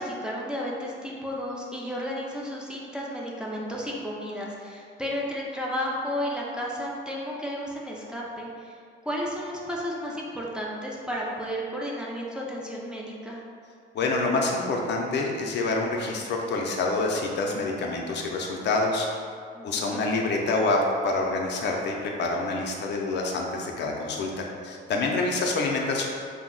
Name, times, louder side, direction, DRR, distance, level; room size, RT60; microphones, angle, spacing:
voice 1, 0.0-8.8 9.0-13.4 19.5-20.1, equal, 5° right, -4 dB, 0.5 m, -33 dB
voice 2, 13.9-19.1 19.6-26.1, left 3 dB, 60° left, 0 dB, 0.4 m, -27 dB
2.6 x 2.0 x 3.8 m, 2.2 s
cardioid pair, 90°, 20 cm